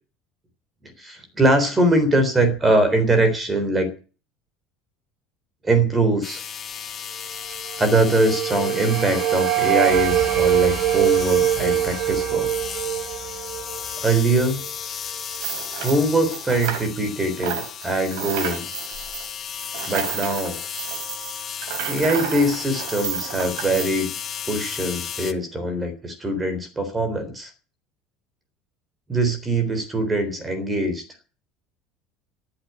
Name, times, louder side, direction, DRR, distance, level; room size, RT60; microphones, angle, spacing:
voice 1, 1.0-3.9 5.6-6.4 7.8-12.5 14.0-14.6 15.8-18.7 19.9-20.6 21.9-24.1 24.5-27.5 29.1-31.0, right 2 dB, 10° right, 9 dB, 3.6 m, -22 dB
sound 1, 6.2-25.3, left 8 dB, 25° left, 1.0 m, -34 dB
sound 2, 7.6-14.7, right 12 dB, 45° right, 1.7 m, -23 dB
sound 3, 15.2-17.1 17.4-23.9, right 9 dB, 65° right, 3.6 m, -32 dB
14.0 x 8.0 x 9.7 m, 0.36 s
cardioid pair, 180°, 0 cm